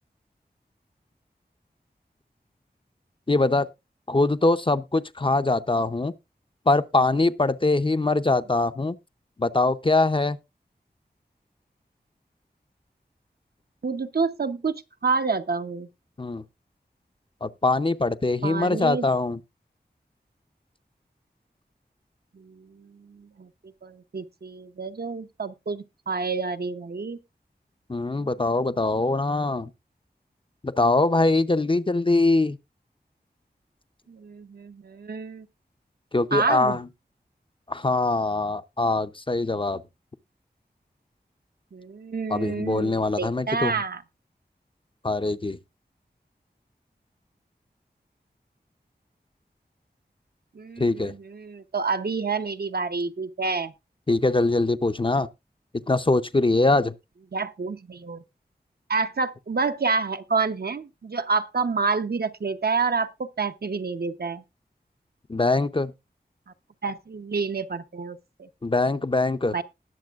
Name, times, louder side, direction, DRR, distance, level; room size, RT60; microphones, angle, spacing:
voice 1, 3.3-3.7 4.1-6.1 6.7-9.0 9.4-10.4 16.2-16.4 17.4-19.4 27.9-29.7 30.6-32.6 36.1-36.8 37.7-39.8 42.3-43.7 45.0-45.6 50.8-51.1 54.1-55.3 55.9-56.9 65.3-65.9 68.6-69.5, left 2 dB, 30° left, 0.6 m, -23 dB
voice 2, 13.8-15.9 18.4-19.1 22.3-23.5 23.8-27.2 28.2-28.3 34.1-35.5 36.3-36.8 41.7-44.0 50.5-53.7 57.3-58.2 58.9-63.1 63.4-64.4 66.8-68.5 69.5-69.6, right 4 dB, 65° right, 0.8 m, -28 dB
19.5 x 7.0 x 2.4 m
wide cardioid pair, 60°, 17 cm